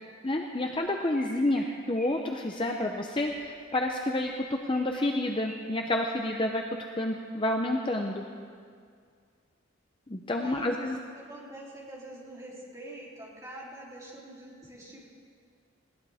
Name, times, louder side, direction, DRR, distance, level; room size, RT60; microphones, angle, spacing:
voice 1, 0.2-6.6 7.0-8.2 10.1-11.0, left 1 dB, 25° left, 3 dB, 0.6 m, -29 dB
Chirp tweet, 0.7-0.8 1.1-1.6 1.9-2.2 2.5-2.8 3.1-3.9 4.2-5.5 5.8-6.4 6.8-7.1 7.5-7.8, equal, ahead, 3.6 m, -48 dB
voice 2, 10.4-15.1, right 1 dB, 15° right, -6 dB, 3.3 m, -45 dB
20.0 x 17.0 x 3.5 m, 2.1 s
head